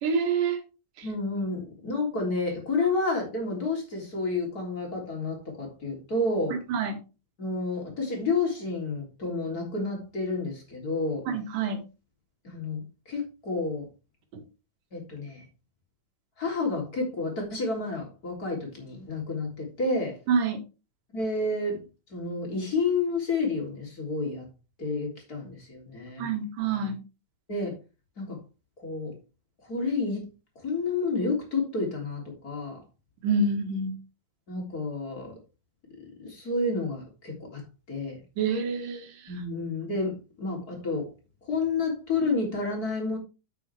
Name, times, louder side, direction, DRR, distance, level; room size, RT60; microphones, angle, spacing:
voice 1, 0.0-0.6 6.7-7.0 11.3-11.8 20.3-20.6 26.2-27.0 33.2-33.9 38.4-39.1, right 4 dB, 70° right, 4 dB, 3.4 m, -26 dB
voice 2, 1.0-6.6 7.4-11.2 12.4-13.9 14.9-15.4 16.4-20.2 21.1-21.8 22.1-24.5 24.8-26.3 27.5-27.7 28.2-28.4 28.8-29.1 29.7-30.3 30.6-32.8 34.5-35.4 36.2-38.2 39.3-41.1 41.4-43.2, left 3 dB, 25° left, -1 dB, 3.7 m, -30 dB
9.1 x 8.4 x 3.5 m, 0.30 s
omnidirectional pair, 4.0 m